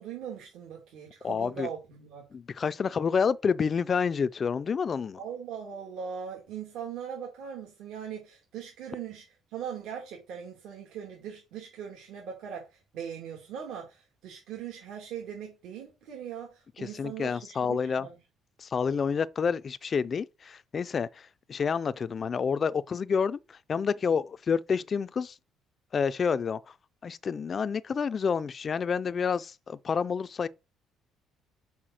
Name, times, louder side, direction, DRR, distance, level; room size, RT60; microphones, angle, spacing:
voice 1, 0.0-2.3 5.2-9.2 9.5-18.2, right 8 dB, 80° right, 2.7 m, -40 dB
voice 2, 1.2-1.7 2.3-5.2 16.8-18.1 18.6-21.2 21.5-23.4 23.7-25.3 25.9-26.6 27.0-30.5, left 6 dB, 30° left, 0.4 m, -28 dB
5.9 x 5.4 x 6.3 m
cardioid pair, 155°, 0 cm